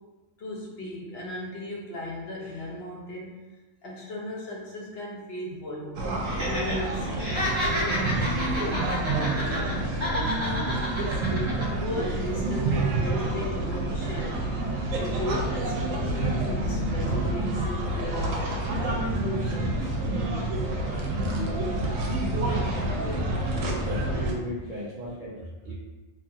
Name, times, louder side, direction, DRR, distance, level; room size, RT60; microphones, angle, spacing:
voice 1, 0.4-3.4 3.8-6.0 6.4-11.3 11.8-14.4 14.9-18.6 19.2-19.9 20.5-20.6, left 1 dB, 55° left, -3 dB, 0.9 m, -36 dB
sound 1, 6.0-24.3, right 2 dB, 85° right, 1.0 m, -28 dB
Laughter, 6.2-6.8 7.1-9.7 10.0-11.6 12.0-12.1, left 1 dB, 30° right, 0.7 m, -30 dB
voice 2, 22.9-25.7, right 1 dB, 65° right, -6 dB, 0.5 m, -37 dB
2.9 x 2.3 x 2.6 m, 1.2 s
omnidirectional pair, 1.3 m